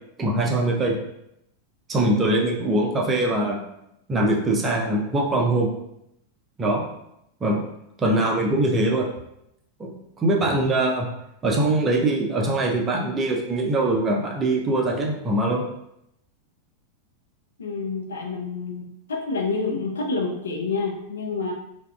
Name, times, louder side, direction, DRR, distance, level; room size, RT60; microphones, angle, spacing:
voice 1, 0.2-1.0 1.9-3.6 4.1-5.7 6.6-6.8 7.4-7.6 8.0-9.1 9.8-11.1 11.4-15.6, right 1 dB, 20° right, 0 dB, 0.5 m, -22 dB
voice 2, 17.6-21.5, left 4 dB, 70° left, 2 dB, 0.4 m, -28 dB
2.6 x 2.3 x 2.2 m, 0.80 s
figure-of-eight pair, 90°, 0 cm